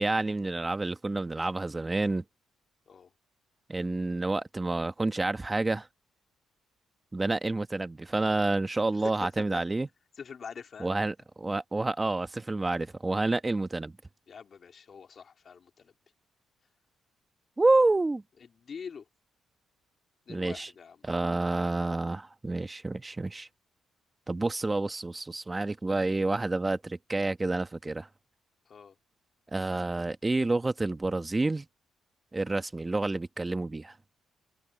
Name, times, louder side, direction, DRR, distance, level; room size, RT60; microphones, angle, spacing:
voice 1, 0.0-2.2 3.7-5.9 7.1-9.9 10.8-13.9 17.6-18.2 20.3-20.7 21.0-23.5 24.3-28.1 29.5-31.7 32.3-33.9, right 2 dB, 20° right, 1.3 m, -29 dB
voice 2, 8.9-9.6 10.2-10.9 14.3-15.9 18.6-19.0 20.3-21.0 28.7-28.9, left 6 dB, 50° left, 3.2 m, -44 dB
cardioid pair, 90°, 0 cm